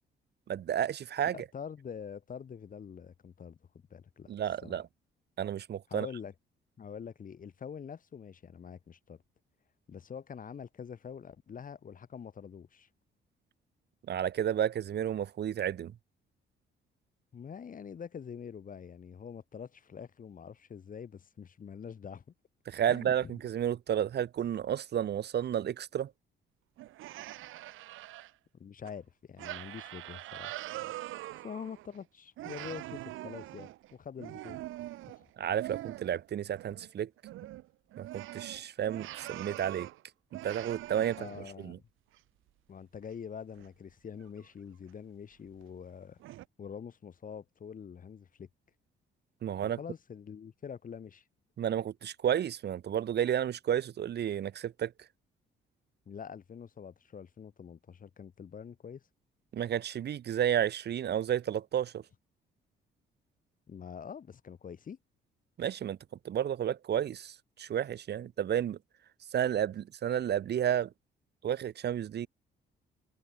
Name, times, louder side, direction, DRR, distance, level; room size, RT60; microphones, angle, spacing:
voice 1, 0.5-1.3 4.3-4.9 5.4-6.1 14.1-15.9 22.7-26.1 35.4-37.1 38.0-39.9 40.4-41.2 41.6-41.8 49.4-49.8 51.6-54.9 59.5-62.0 65.6-66.0 66.2-68.8 69.3-70.9 71.4-72.3, right 10 dB, 60° right, 1.1 m, -31 dB
voice 2, 1.3-3.6 3.9-4.3 4.6-4.8 5.9-6.3 6.8-9.2 9.9-12.9 17.3-22.2 22.9-23.4 28.5-30.5 31.4-34.6 35.2-35.3 41.0-41.8 42.7-46.2 46.6-48.5 49.6-51.2 56.1-59.0 63.7-65.0, left 7 dB, 45° left, 1.5 m, -45 dB
sound 1, 26.8-28.3 28.8-28.9 29.4-32.0 32.4-36.3 36.5-36.9 37.2-40.0 40.3-41.6 42.1-42.2 43.6-43.7 44.2-44.5 44.9-45.0 45.6-45.7 46.2-46.5, right 16 dB, 85° right, 1.2 m, -43 dB
cardioid pair, 90°, 20 cm